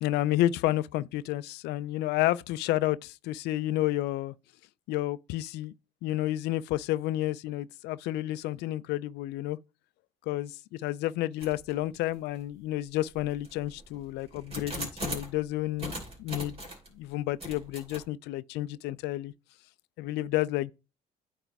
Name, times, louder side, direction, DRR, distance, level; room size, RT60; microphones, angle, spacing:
voice 1, 0.0-4.3 4.9-5.7 6.0-9.6 10.3-16.6 16.9-19.3 20.0-20.7, left 15 dB, 85° left, 0.4 m, -30 dB
sound 1, 11.4-11.7 12.3-12.4 13.1-15.4 15.8-16.9 17.4-18.0, right 1 dB, 35° right, 2.8 m, -39 dB
9.0 x 3.4 x 4.6 m
cardioid pair, 110°, 17 cm